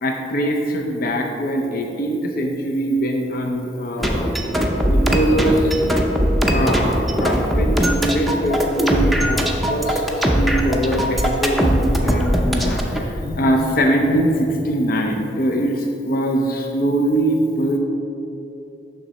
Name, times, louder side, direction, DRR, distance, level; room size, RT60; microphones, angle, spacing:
voice 1, 0.0-4.3 4.8-5.8 6.5-17.8, right 1 dB, 55° left, 2 dB, 0.6 m, -22 dB
sound 1, 4.0-13.0, equal, ahead, 0.6 m, -19 dB
6.5 x 6.0 x 4.1 m, 3.0 s
head